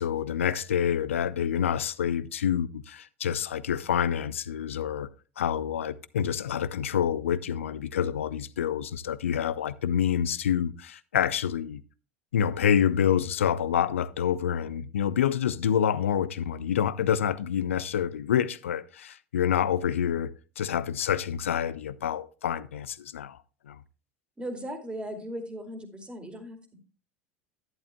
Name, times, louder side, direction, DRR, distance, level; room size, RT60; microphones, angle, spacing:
voice 1, 0.0-5.1 5.4-11.8 12.3-23.4 23.7-23.8, left 9 dB, 75° left, 0.6 m, -27 dB
voice 2, 24.4-26.8, equal, 15° right, 2.4 m, -38 dB
11.5 x 11.0 x 2.2 m
figure-of-eight pair, 70°, 7 cm